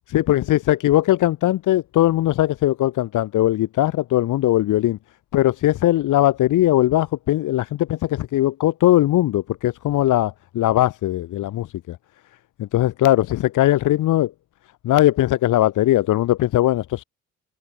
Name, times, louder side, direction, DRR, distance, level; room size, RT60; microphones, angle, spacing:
voice 1, 0.1-5.0 5.3-12.0 12.6-14.3 14.8-17.0, left 14 dB, 85° left, 6.7 m, -19 dB
cardioid pair, 90°, 30 cm